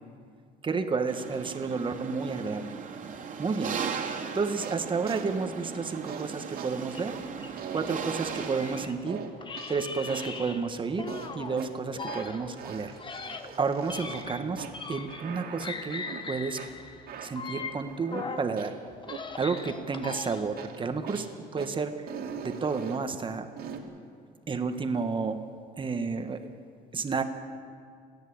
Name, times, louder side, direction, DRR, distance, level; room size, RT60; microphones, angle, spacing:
voice 1, 0.6-2.7 3.4-3.8 4.3-7.1 7.7-9.2 9.7-11.1 11.3-12.9 13.6-16.6 17.2-18.8 19.4-21.3 21.5-21.9 22.4-23.5 24.5-25.4 25.8-26.4 26.9-27.2, right 4 dB, 30° right, 7 dB, 1.5 m, -31 dB
sound 1, 1.1-8.9, right 6 dB, 50° right, 2.4 m, -37 dB
sound 2, 4.6-4.8 5.1-5.3 6.1-6.2 6.6-6.7 7.1-7.2 7.6-8.7 9.1-9.7 10.1-10.4 11.1-11.7 12.1-12.3 12.6-14.3 14.6-14.7 15.1-15.7 16.1-16.2 16.6-16.7 17.1-18.3 18.6-18.7 19.1-19.2 19.6-19.7 20.1-20.3 20.6-20.8 21.1-21.3 21.6-21.7 22.1-23.0 23.6-23.8, right 7 dB, 65° right, 2.6 m, -41 dB
sound 3, 6.9-9.0 9.4-11.6 11.9-15.4 15.6-18.5 18.9-20.6, left 4 dB, 30° left, 1.4 m, -40 dB
29.5 x 10.5 x 8.7 m, 2.2 s
cardioid pair, 110°, 17 cm